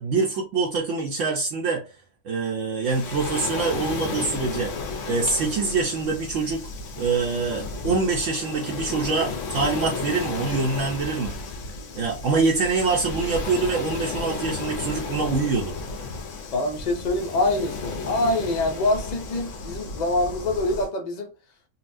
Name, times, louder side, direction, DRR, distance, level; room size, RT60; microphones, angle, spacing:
voice 1, 0.0-1.8 2.2-4.7 5.0-6.7 7.0-11.4 11.9-15.7, right 4 dB, 70° right, 1.0 m, -25 dB
Waves surf, 2.8-20.9, left 4 dB, 70° left, 1.0 m, -33 dB
voice 2, 16.5-21.3, left 2 dB, 85° left, 0.3 m, -25 dB
4.0 x 2.2 x 2.5 m
omnidirectional pair, 1.4 m